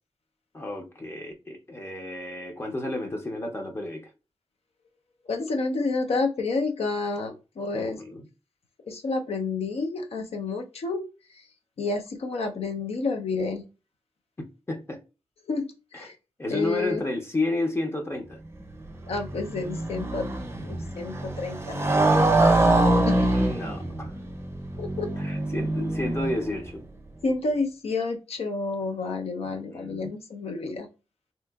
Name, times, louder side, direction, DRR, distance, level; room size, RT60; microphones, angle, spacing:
voice 1, 0.5-4.1 7.7-8.3 14.7-15.0 15.9-16.1 16.4-18.4 23.3-24.1 25.2-26.8 29.4-30.1, left 2 dB, 25° left, 0.5 m, -31 dB
voice 2, 5.3-8.0 8.9-11.0 11.8-13.6 15.5-16.1 16.5-17.0 19.1-20.3 20.6-21.8 22.9-23.3 24.8-25.1 27.2-30.9, left 3 dB, 75° left, 0.5 m, -29 dB
Motorcycle, 18.6-26.7, right 2 dB, 25° right, 0.6 m, -25 dB
3.4 x 2.8 x 2.2 m
wide cardioid pair, 115°, 10 cm